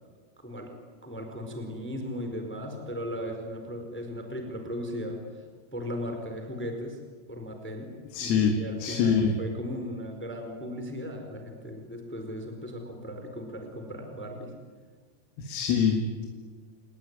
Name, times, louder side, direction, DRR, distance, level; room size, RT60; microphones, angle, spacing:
voice 1, 1.0-5.2 5.7-7.0 7.3-7.9 8.2-14.5, equal, ahead, 4 dB, 3.5 m, -37 dB
voice 2, 8.1-9.3 15.4-16.3, left 6 dB, 80° left, 4 dB, 4.5 m, -25 dB
29.5 x 19.5 x 9.7 m, 1.5 s
omnidirectional pair, 5.9 m